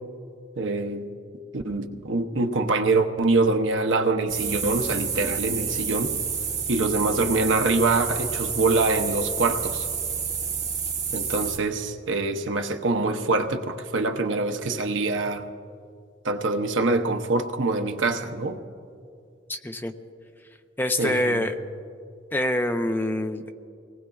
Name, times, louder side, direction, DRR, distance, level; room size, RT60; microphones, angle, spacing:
voice 1, 0.6-1.1 1.5-6.2 6.7-9.9 11.1-15.5 16.2-18.6 21.0-21.5, right 3 dB, 90° right, 5 dB, 0.8 m, -24 dB
sound 1, 4.3-11.6, right 6 dB, 40° right, 1.3 m, -29 dB
voice 2, 19.5-19.9 20.8-21.5 22.3-23.5, left 1 dB, 10° left, 6 dB, 0.5 m, -25 dB
26.0 x 18.5 x 2.4 m, 2.4 s
head